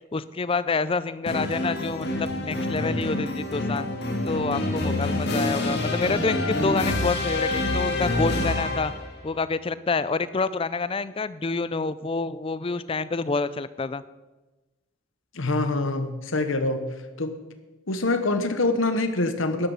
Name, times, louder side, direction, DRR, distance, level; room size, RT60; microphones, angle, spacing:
voice 1, 0.1-3.9 4.2-8.9 9.2-14.0, left 4 dB, 25° left, 15 dB, 0.4 m, -27 dB
sound 1, 1.3-9.1, left 2 dB, 50° left, 2.0 m, -27 dB
voice 2, 15.4-16.8 17.2-17.3 17.9-19.7, left 2 dB, 70° left, 9 dB, 1.2 m, -25 dB
12.0 x 11.5 x 5.5 m, 1.1 s
head